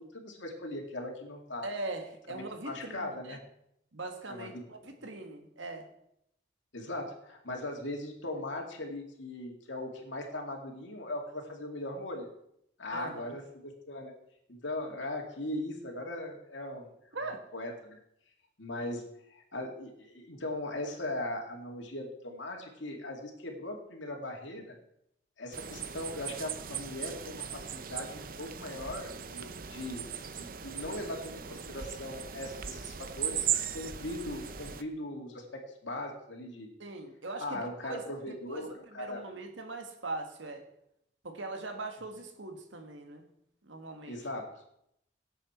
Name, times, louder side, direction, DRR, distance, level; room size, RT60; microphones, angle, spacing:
voice 1, 0.0-1.7 2.3-3.4 4.3-4.6 6.7-12.3 12.8-14.1 14.5-16.9 17.5-18.0 18.6-24.8 25.4-30.1 30.4-36.7 37.4-39.2 44.1-44.6, left 1 dB, 85° left, 2 dB, 2.4 m, -39 dB
voice 2, 1.6-3.4 3.9-5.9 12.9-13.3 17.1-17.4 36.8-38.0 38.3-40.7 41.2-43.2 43.6-44.2, right 2 dB, 90° right, 5 dB, 1.8 m, -41 dB
sound 1, 25.5-34.8, right 9 dB, 45° right, 0.7 m, -38 dB
17.5 x 8.2 x 4.4 m, 0.76 s
head